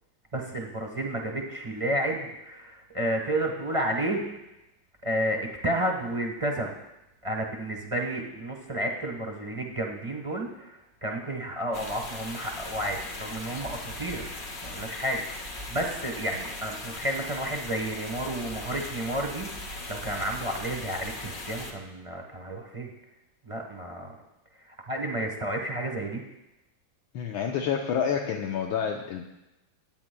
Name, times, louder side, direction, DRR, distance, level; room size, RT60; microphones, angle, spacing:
voice 1, 0.3-4.2 5.0-6.7 7.2-22.9 23.4-24.1 24.7-26.2, right 1 dB, 25° right, 1 dB, 0.8 m, -31 dB
sound 1, 11.7-21.7, left 2 dB, 45° left, 1.8 m, -39 dB
voice 2, 27.1-29.2, left 7 dB, 75° left, 1 dB, 1.6 m, -28 dB
22.0 x 9.2 x 2.2 m, 0.95 s
omnidirectional pair, 2.2 m